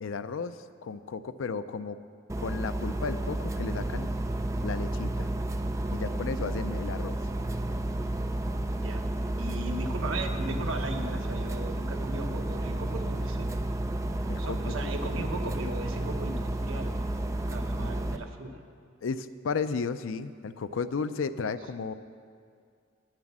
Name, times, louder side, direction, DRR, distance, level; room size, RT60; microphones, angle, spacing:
voice 1, 0.0-2.0 2.4-4.1 4.6-5.3 5.9-7.2 14.3-14.9 19.0-21.9, left 5 dB, 85° left, 12 dB, 0.4 m, -34 dB
sound 1, 2.3-18.2, right 1 dB, 15° right, 0.3 m, -31 dB
voice 2, 8.7-9.0 9.4-13.5 14.4-18.7, right 2 dB, 90° right, 4 dB, 1.0 m, -37 dB
9.5 x 7.5 x 7.3 m, 2.2 s
head